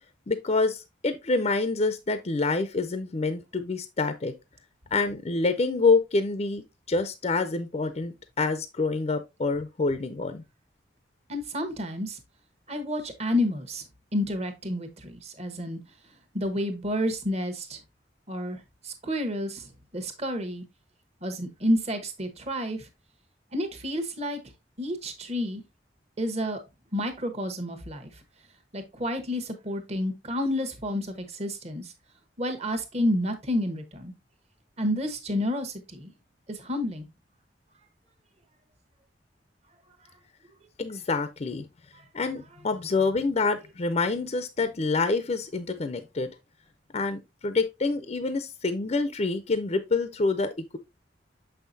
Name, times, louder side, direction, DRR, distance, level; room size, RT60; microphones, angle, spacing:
voice 1, 0.3-4.3 4.9-10.4 40.8-41.7 42.1-46.3 46.9-50.8, left 3 dB, 35° left, 0.5 m, -27 dB
voice 2, 11.3-12.2 12.7-13.8 14.1-15.8 16.3-17.8 18.3-20.6 21.2-22.9 23.5-24.4 24.8-25.6 26.2-26.6 26.9-28.1 28.7-31.9 32.4-34.1 34.8-36.1 36.5-37.1, left 1 dB, 35° right, 1.1 m, -30 dB
6.6 x 5.6 x 2.6 m
head